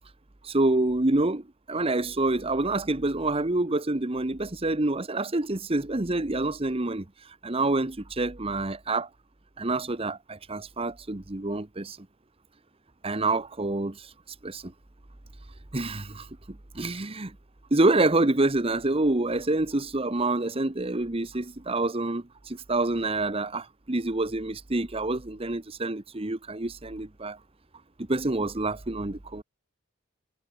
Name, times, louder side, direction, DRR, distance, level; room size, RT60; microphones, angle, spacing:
voice 1, 0.4-9.1 9.6-12.0 13.0-14.1 14.4-14.7 15.7-17.3 17.7-27.4 28.1-29.4, right 2 dB, 30° right, 1.1 m, -27 dB
head